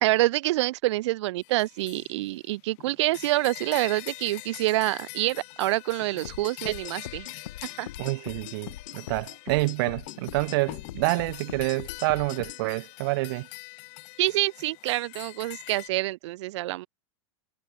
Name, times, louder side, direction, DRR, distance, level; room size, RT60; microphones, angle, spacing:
voice 1, 0.0-7.3 7.8-7.9 14.2-16.9, right 18 dB, 65° right, 0.9 m, -26 dB
sound 1, 1.4-15.9, left 36 dB, 40° left, 1.8 m, -44 dB
sound 2, 6.2-12.6, left 13 dB, 85° left, 1.9 m, -41 dB
voice 2, 8.0-13.5, right 23 dB, 45° right, 0.4 m, -28 dB
supercardioid pair, 160°, 16 cm